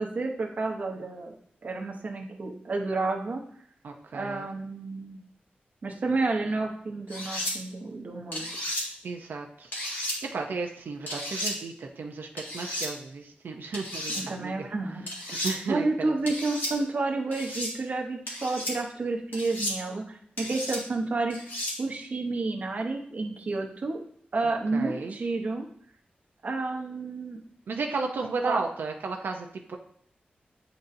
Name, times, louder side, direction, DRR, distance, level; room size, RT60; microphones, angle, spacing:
voice 1, 0.0-1.3 1.6-3.4 4.1-5.2 5.8-8.7 14.1-15.1 15.4-21.5 21.8-24.0 24.3-25.7 26.4-27.4 28.4-28.6, right 3 dB, 45° right, 1 dB, 0.8 m, -30 dB
voice 2, 3.8-4.5 9.0-9.7 10.3-14.5 15.3-16.1 24.7-25.1 27.7-29.8, right 4 dB, 90° right, 2 dB, 0.6 m, -34 dB
sound 1, 7.1-7.5 8.3-8.8 9.7-10.2 11.1-11.5 12.4-12.9 13.7-14.2 15.1-15.5 16.3-16.7 17.3-17.7 18.3-18.7 19.3-19.8 20.4-20.8 21.3-21.7, left 1 dB, 75° left, 1.8 m, -33 dB
8.8 x 4.0 x 2.7 m, 0.62 s
wide cardioid pair, 170°, 3 cm